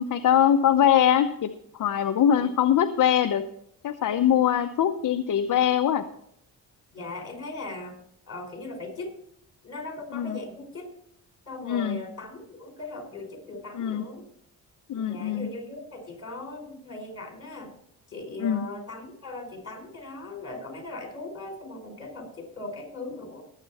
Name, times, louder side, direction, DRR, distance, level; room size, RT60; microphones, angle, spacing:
voice 1, 0.0-1.5 1.8-3.4 3.8-6.0 10.1-10.4 11.6-12.0 13.7-14.0 14.9-15.5 18.4-18.6, left 9 dB, 50° left, 8 dB, 0.8 m, -22 dB
voice 2, 4.1-4.5 6.9-8.0 8.3-9.1 9.6-10.9 11.5-14.3 14.9-17.7 18.1-23.4, left 2 dB, 35° left, 3 dB, 4.6 m, -39 dB
18.5 x 8.2 x 4.1 m, 0.71 s
cardioid pair, 100°, 39 cm